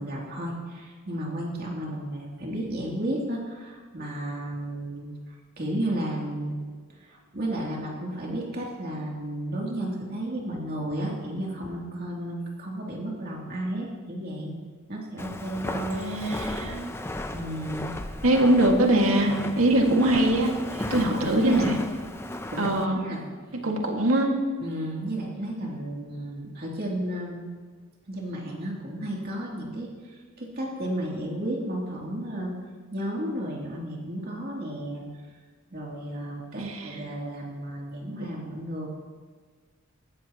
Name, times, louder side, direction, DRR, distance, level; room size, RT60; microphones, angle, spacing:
voice 1, 0.0-5.1 5.6-6.5 7.1-14.5 14.9-16.0 17.3-17.9 20.9-21.7 22.5-22.7 22.9-23.2 24.6-27.4 28.1-29.9 30.4-32.5 32.9-35.0 35.7-38.9, right 1 dB, 45° right, -3 dB, 3.0 m, -32 dB
Walk footsteps, 15.2-22.9, left 1 dB, 10° left, 0.6 m, -35 dB
voice 2, 15.9-17.0 18.2-21.8 22.6-23.0 23.6-24.3 36.6-37.0, right 1 dB, 80° right, 1 dB, 2.0 m, -23 dB
18.5 x 14.5 x 3.0 m, 1.5 s
head